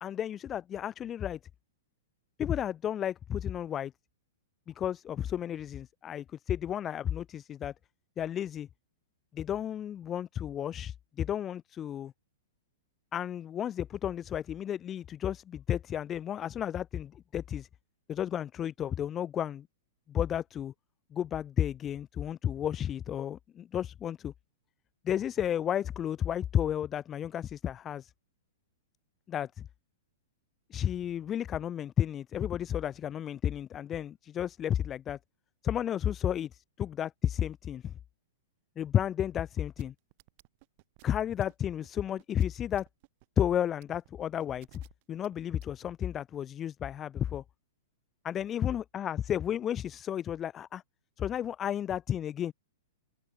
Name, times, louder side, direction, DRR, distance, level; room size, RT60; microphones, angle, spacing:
voice 1, 0.0-1.4 2.4-3.9 4.7-7.7 8.2-8.7 9.3-12.1 13.1-17.7 18.1-19.7 20.1-20.7 21.1-24.3 25.0-28.1 29.3-29.7 30.7-35.2 35.6-37.9 38.8-39.9 41.0-42.9 43.4-44.8 45.1-47.4 48.2-50.8 51.2-52.5, left 10 dB, 25° left, 0.5 m, -32 dB
sound 1, 39.8-46.2, right 26 dB, 50° right, 1.3 m, -59 dB
hypercardioid pair, 110°, 0 cm